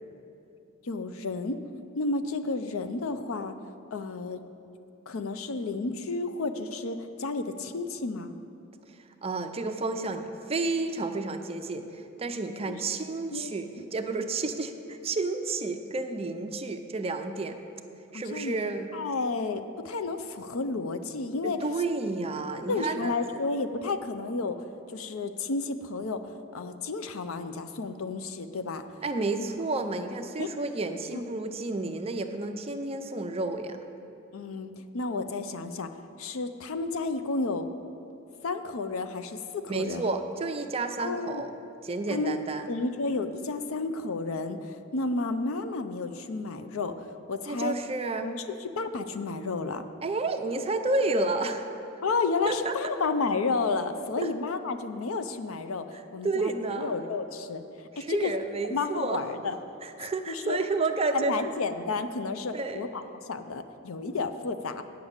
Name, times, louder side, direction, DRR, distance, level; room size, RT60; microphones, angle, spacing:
voice 1, 0.8-1.6 2.0-3.5 3.9-4.4 5.1-8.3 12.7-13.0 13.3-13.8 18.1-18.6 18.9-21.6 22.7-24.6 24.9-28.8 29.4-29.5 30.4-30.5 31.1-31.2 34.3-35.9 36.2-37.7 38.4-40.0 41.0-41.4 42.1-42.4 42.7-47.8 48.2-49.8 52.0-55.9 56.1-57.6 58.0-58.3 58.7-59.6 60.3-60.6 61.1-64.8, left 3 dB, 85° left, 10 dB, 0.6 m, -31 dB
voice 2, 9.2-11.9 12.2-17.6 18.1-18.9 21.4-23.4 29.0-33.8 39.7-41.5 41.8-42.7 47.5-48.3 50.0-51.7 52.4-52.7 54.2-54.3 56.2-56.9 58.0-59.2 59.8-61.3 62.5-62.9, right 3 dB, 30° right, 7 dB, 0.5 m, -31 dB
8.6 x 6.0 x 8.1 m, 2.7 s
head